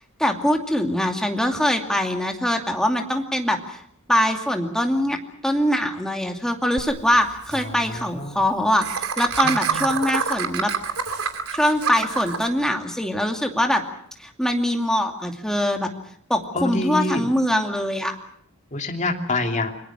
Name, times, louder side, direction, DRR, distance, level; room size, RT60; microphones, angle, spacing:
voice 1, 0.2-3.8 4.1-5.2 5.4-8.8 9.2-10.7 11.5-13.8 14.2-15.9 16.3-18.2, left 1 dB, 5° left, 3 dB, 2.6 m, -23 dB
Laughter, 6.8-6.9 7.1-7.2 7.4-7.6 8.8-12.5, right 6 dB, 85° right, 2.7 m, -26 dB
voice 2, 7.6-8.4 9.4-9.9 16.5-17.3 18.7-19.7, left 2 dB, 35° left, 3 dB, 3.0 m, -27 dB
30.0 x 22.0 x 6.1 m, 0.65 s
head